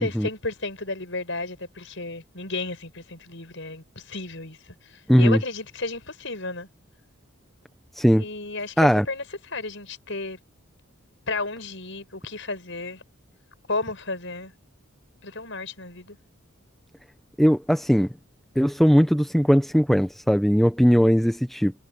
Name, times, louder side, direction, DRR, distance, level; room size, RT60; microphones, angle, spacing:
voice 1, 0.0-6.7 8.2-10.4 11.3-13.0 13.7-14.5 15.2-16.2, left 3 dB, 60° left, 7.9 m, -33 dB
voice 2, 5.1-5.4 8.0-8.2 8.8-9.0 17.4-18.1 18.6-21.7, equal, ahead, 0.8 m, -19 dB
head